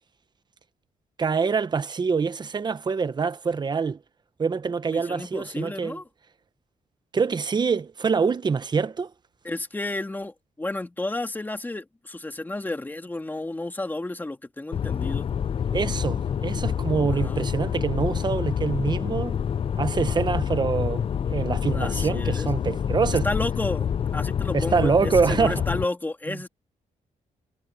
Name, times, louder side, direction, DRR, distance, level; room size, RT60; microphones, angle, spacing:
voice 1, 1.2-4.0 4.4-6.0 7.1-9.1 15.7-19.4 19.8-23.3 24.5-25.6 26.3-26.4, right 5 dB, 30° right, 0.9 m, -25 dB
voice 2, 4.9-6.0 9.4-15.3 17.1-17.4 21.7-22.5 23.2-26.5, left 2 dB, 15° left, 2.4 m, -32 dB
sound 1, 14.7-25.8, left 8 dB, 40° left, 0.5 m, -27 dB
wide cardioid pair, 140°, 14 cm